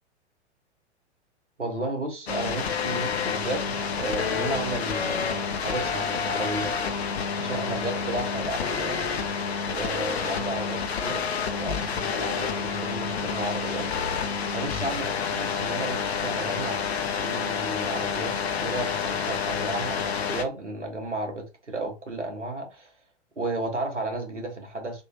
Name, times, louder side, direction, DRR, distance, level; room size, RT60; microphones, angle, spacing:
voice 1, 1.6-6.7 7.4-9.0 9.7-11.3 11.5-13.9 14.5-16.8 17.2-18.4 18.6-22.9 23.4-25.0, right 2 dB, 85° right, 1.0 m, -33 dB
sound 1, 2.3-20.5, left 6 dB, 60° left, 0.7 m, -29 dB
3.5 x 2.6 x 2.6 m
figure-of-eight pair, 105°, 35 cm